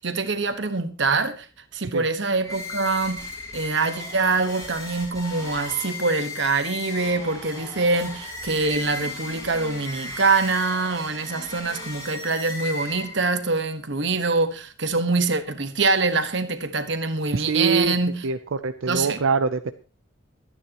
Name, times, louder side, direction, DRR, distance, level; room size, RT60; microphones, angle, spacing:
voice 1, 0.0-1.5 1.7-3.2 3.5-18.2 18.9-19.2, right 3 dB, 60° right, 1.4 m, -24 dB
sound 1, 2.4-13.4, left 2 dB, 15° left, 7.3 m, -36 dB
voice 2, 17.3-17.9 18.2-18.4 18.6-19.7, right 4 dB, 90° right, 0.6 m, -23 dB
23.5 x 9.8 x 3.0 m
head